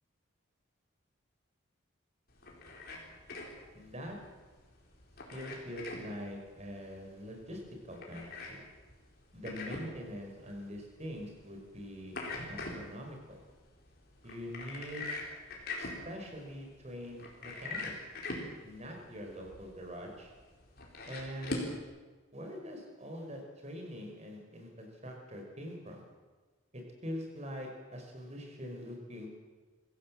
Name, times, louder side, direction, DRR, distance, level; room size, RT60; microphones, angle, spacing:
sound 1, 2.3-21.8, left 2 dB, 45° left, 4.5 m, -44 dB
voice 1, 3.7-4.2 5.3-8.6 9.3-12.2 12.5-13.4 14.2-15.1 15.8-17.9 18.6-20.3 21.1-21.7 22.3-26.0 26.7-29.3, equal, 35° right, 2 dB, 5.2 m, -44 dB
24.0 x 16.5 x 7.7 m, 1.3 s
head